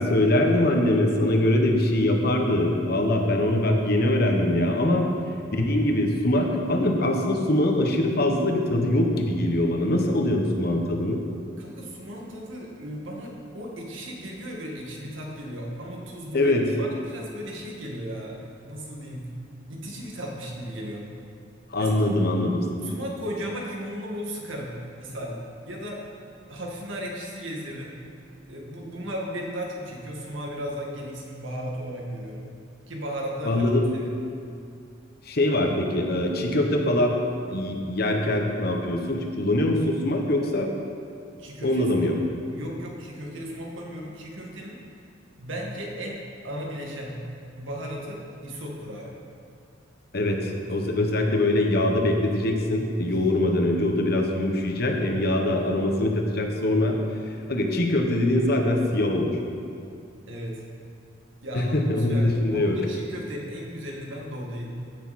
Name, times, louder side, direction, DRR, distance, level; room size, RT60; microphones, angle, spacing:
voice 1, 0.0-5.1 5.5-11.2 16.3-16.6 21.7-22.9 33.4-33.9 35.3-37.2 37.5-40.7 41.6-42.2 50.1-57.0 57.5-59.4 61.5-62.8, left 1 dB, 55° left, 2 dB, 1.2 m, -23 dB
voice 2, 11.6-19.3 19.7-21.1 21.8-22.0 22.8-25.4 25.7-26.0 26.5-27.9 28.5-32.5 32.9-34.1 41.4-42.1 42.5-44.8 45.4-47.2 47.5-49.1 50.5-50.6 53.0-53.2 60.3-60.6 61.4-64.7, equal, 90° right, -1 dB, 1.9 m, -36 dB
15.5 x 6.8 x 4.2 m, 2.4 s
head